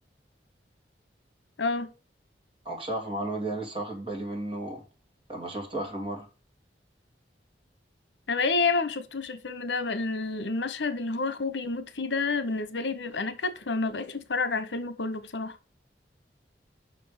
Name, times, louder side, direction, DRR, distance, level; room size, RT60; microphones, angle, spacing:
voice 1, 1.6-1.9 8.3-15.5, left 3 dB, 85° left, 1.0 m, -29 dB
voice 2, 2.6-4.8 5.3-6.3, right 1 dB, 30° right, 2.8 m, -33 dB
5.9 x 5.2 x 6.6 m
head